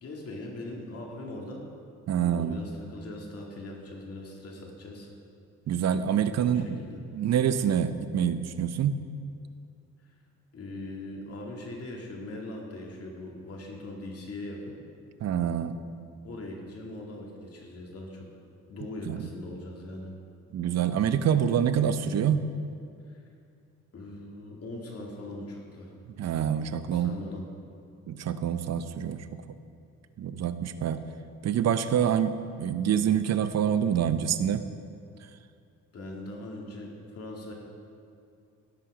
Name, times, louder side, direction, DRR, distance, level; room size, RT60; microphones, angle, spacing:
voice 1, 0.0-1.6 2.1-5.1 6.4-7.0 10.0-10.1 10.5-14.8 16.2-18.3 18.7-20.1 23.1-23.2 23.9-25.9 26.9-27.5 35.9-37.5, left 1 dB, 50° left, -1 dB, 2.3 m, -40 dB
voice 2, 2.1-2.6 5.7-6.8 7.1-9.0 15.2-15.8 19.1-19.2 20.5-22.5 26.2-27.1 28.1-29.3 30.2-31.0 31.4-34.6, right 8 dB, 60° right, 11 dB, 0.7 m, -26 dB
16.5 x 5.9 x 5.0 m, 2.4 s
cardioid pair, 90°, 30 cm